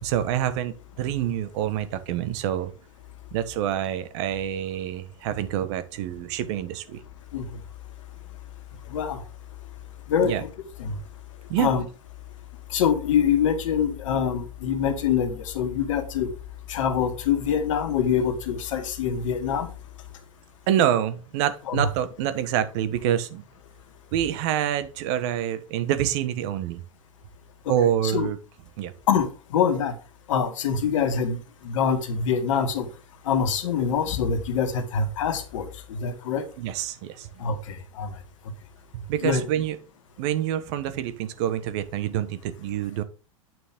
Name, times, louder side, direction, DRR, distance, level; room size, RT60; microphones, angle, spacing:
voice 1, 0.0-2.7 3.3-7.0 10.2-10.4 11.5-11.7 20.7-23.4 24.1-26.8 27.7-28.4 28.8-28.9 36.6-37.3 38.9-39.8 40.2-43.0, right 11 dB, 55° right, 12 dB, 1.3 m, -26 dB
voice 2, 10.1-10.5 10.8-10.9 11.6-11.8 12.7-16.3 16.7-19.7 21.7-21.9 27.7-27.8 28.0-28.3 29.1-29.3 29.5-29.9 30.3-31.4 31.6-32.9 33.3-36.4 37.4-38.1 39.2-39.4, left 7 dB, 70° left, 6 dB, 1.9 m, -24 dB
9.1 x 6.3 x 3.7 m, 0.34 s
hypercardioid pair, 110°, 17 cm